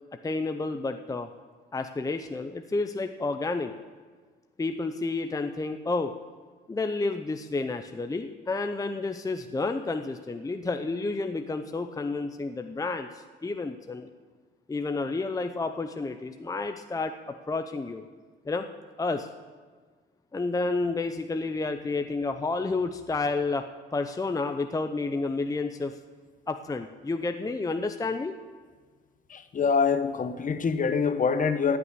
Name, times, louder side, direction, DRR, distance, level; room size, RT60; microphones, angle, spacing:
voice 1, 0.2-1.3 1.7-3.7 4.6-6.1 6.7-14.1 14.7-18.0 18.4-18.7 19.0-19.3 20.3-23.7 23.9-25.9 26.5-28.4, left 3 dB, 15° left, 0.6 m, -30 dB
voice 2, 29.3-31.8, left 5 dB, 40° left, 1.0 m, -25 dB
16.5 x 6.1 x 9.6 m
cardioid pair, 90°, 20 cm